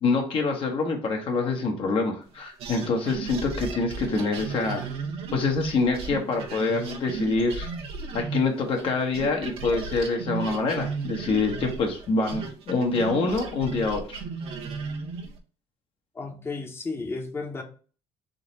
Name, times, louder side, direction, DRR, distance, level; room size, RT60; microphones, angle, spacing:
voice 1, 0.0-4.9 5.3-7.7 8.1-14.2, left 3 dB, 55° left, 2 dB, 1.1 m, -26 dB
sound 1, 2.6-8.9 9.1-15.4, right 5 dB, 60° right, 0.9 m, -35 dB
voice 2, 16.1-17.6, left 3 dB, 20° left, 4 dB, 0.9 m, -33 dB
3.8 x 2.8 x 4.0 m, 0.40 s
cardioid pair, 105°, 11 cm